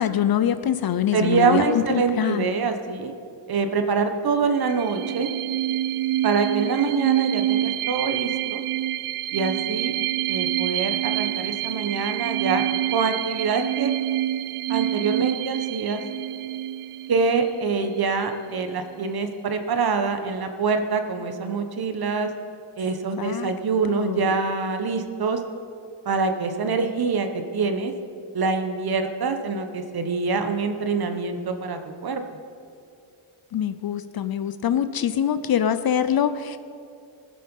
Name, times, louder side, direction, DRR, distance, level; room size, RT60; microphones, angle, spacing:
voice 1, 0.0-2.5 23.2-23.5 23.9-24.4 33.5-36.6, left 9 dB, 50° left, 12 dB, 0.5 m, -24 dB
voice 2, 1.1-3.1 3.5-5.3 6.2-8.6 9.3-9.9 10.3-12.6 12.9-13.9 14.7-16.0 17.1-22.3 22.8-25.4 26.0-27.9 28.3-32.2, right 4 dB, 50° right, 7 dB, 1.2 m, -25 dB
sound 1, 4.6-18.0, right 13 dB, 85° right, 0.6 m, -27 dB
19.5 x 7.7 x 5.4 m, 2.5 s
cardioid pair, 125°, 49 cm